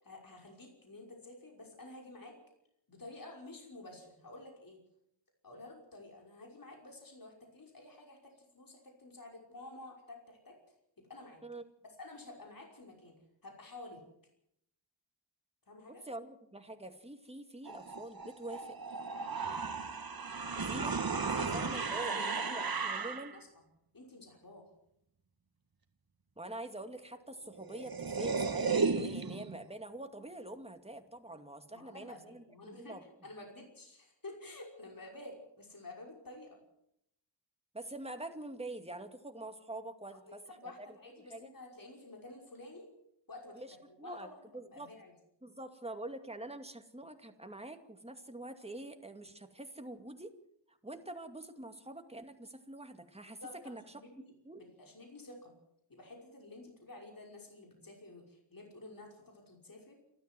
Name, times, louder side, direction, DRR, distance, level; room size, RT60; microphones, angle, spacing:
voice 1, 0.0-2.3 2.9-4.8 5.4-11.4 12.0-13.2 13.4-14.0 15.7-16.0 21.3-21.9 22.3-23.5 23.9-24.7 31.7-36.6 40.1-42.9 43.3-45.1 53.4-55.5 55.9-60.0, left 2 dB, 50° left, 1 dB, 5.7 m, -51 dB
voice 2, 16.1-18.8 20.5-21.0 21.3-23.4 26.4-33.0 37.7-40.7 41.3-41.5 43.5-44.3 44.5-44.9 45.4-50.3 50.7-53.4 53.7-53.8 54.4-54.7, right 1 dB, 15° right, 6 dB, 2.3 m, -45 dB
sound 1, 17.7-23.4 27.3-27.4 27.5-29.6, right 4 dB, 50° right, 1.9 m, -35 dB
28.5 x 13.0 x 7.7 m, 0.76 s
wide cardioid pair, 100°, 45 cm